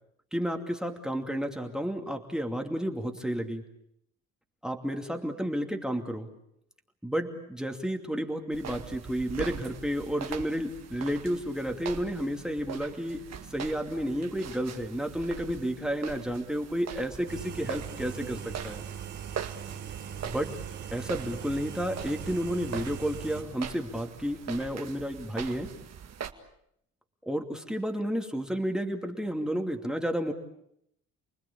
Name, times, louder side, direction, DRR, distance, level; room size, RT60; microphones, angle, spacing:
voice 1, 0.3-3.6 4.6-6.3 7.0-13.2 13.5-18.8 20.3-20.5 20.9-25.7 27.3-30.3, equal, ahead, 5 dB, 2.6 m, -31 dB
sound 1, 8.5-26.3, right 8 dB, 60° right, 2.1 m, -42 dB
sound 2, 17.3-23.4, right 8 dB, 90° right, 3.3 m, -40 dB
29.5 x 20.0 x 8.6 m, 0.75 s
cardioid pair, 90°, 30 cm